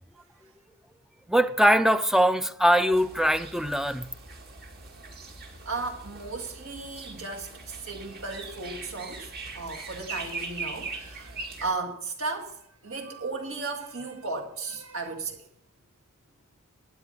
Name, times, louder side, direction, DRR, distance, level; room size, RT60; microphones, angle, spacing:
voice 1, 1.3-4.1, equal, ahead, 0.4 m, -22 dB
sound 1, 2.9-11.7, right 4 dB, 45° right, 2.3 m, -41 dB
voice 2, 5.7-15.4, right 3 dB, 65° right, 2.0 m, -35 dB
13.0 x 9.4 x 5.3 m
head